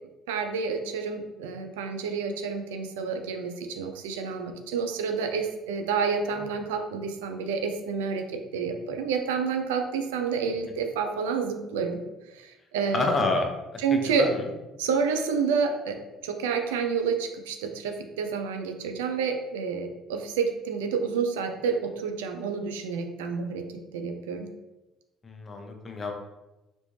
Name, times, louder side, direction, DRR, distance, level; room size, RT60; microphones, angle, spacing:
voice 1, 0.3-8.2 8.5-12.0 12.3-13.1 13.8-14.3 14.8-16.0 16.2-23.6 23.9-24.5, right 5 dB, 90° right, 5 dB, 0.4 m, -29 dB
voice 2, 12.9-14.5 25.2-26.1, left 3 dB, 35° left, 3 dB, 0.7 m, -29 dB
3.4 x 2.5 x 3.1 m, 1.0 s
hypercardioid pair, 70°, 0 cm